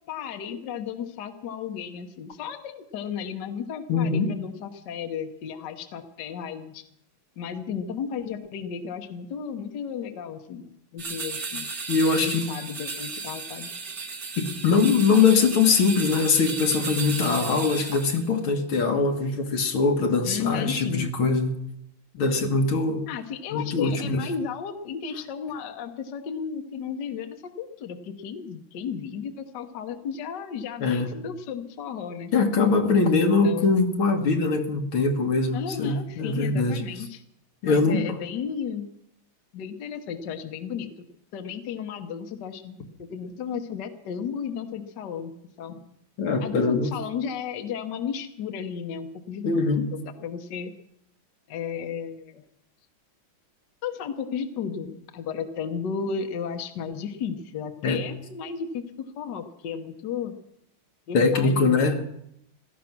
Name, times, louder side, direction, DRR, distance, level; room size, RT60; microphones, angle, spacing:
voice 1, 0.1-6.8 7.4-11.7 12.2-13.7 20.2-21.1 23.1-32.3 33.1-33.7 35.5-37.2 37.6-38.9 39.5-41.0 41.3-45.3 45.6-45.7 46.4-50.7 51.5-52.4 53.8-60.3 61.1-62.0, left 7 dB, 60° left, 7 dB, 1.6 m, -34 dB
voice 2, 3.9-4.3 11.9-12.4 14.4-21.5 22.1-23.0 23.5-24.2 30.8-31.1 32.3-36.8 37.6-38.0 46.2-46.9 49.4-49.9 57.8-58.0 61.1-62.0, left 4 dB, 85° left, 4 dB, 2.4 m, -22 dB
sound 1, 11.0-18.3, right 4 dB, 45° right, 2.1 m, -34 dB
16.5 x 13.5 x 6.0 m, 0.76 s
omnidirectional pair, 2.2 m